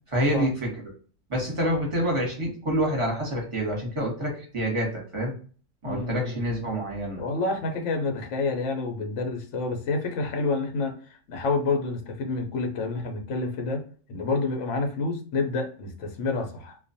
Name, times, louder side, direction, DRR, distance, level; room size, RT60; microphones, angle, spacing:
voice 1, 0.1-0.7 1.3-5.3 5.8-7.2, equal, 25° right, 0.9 m, -27 dB
voice 2, 5.8-6.4 7.2-11.0 11.3-13.8 14.1-16.8, left 3 dB, 70° left, 0.9 m, -28 dB
2.3 x 2.2 x 2.6 m
omnidirectional pair, 1.3 m